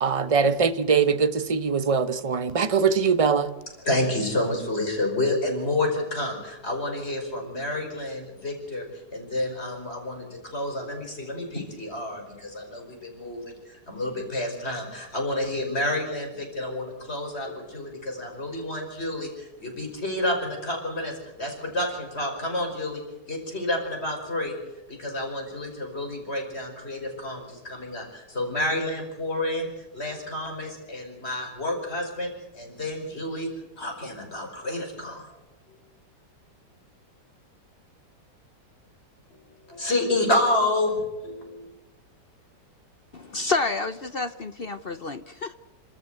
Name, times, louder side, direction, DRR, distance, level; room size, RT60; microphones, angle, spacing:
voice 1, 0.0-3.5, right 5 dB, 30° right, 0.7 m, -22 dB
voice 2, 3.8-8.8 9.1-23.0 23.3-24.6 24.9-29.7 29.9-33.5 33.8-35.3 39.3-39.4 39.7-41.7, left 1 dB, 35° left, 5.7 m, -29 dB
voice 3, 43.1-45.5, left 3 dB, 50° left, 0.7 m, -29 dB
29.0 x 13.5 x 7.9 m
omnidirectional pair, 1.9 m